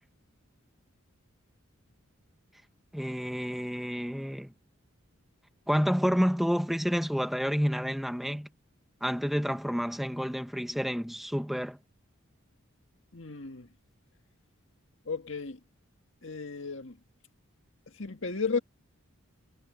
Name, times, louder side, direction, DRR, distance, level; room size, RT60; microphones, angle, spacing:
voice 1, 2.9-4.5 5.7-8.5 9.0-11.8, equal, ahead, 1.4 m, -29 dB
voice 2, 13.1-13.7 15.1-15.6 16.2-17.0 18.0-18.6, left 4 dB, 60° left, 1.9 m, -34 dB
head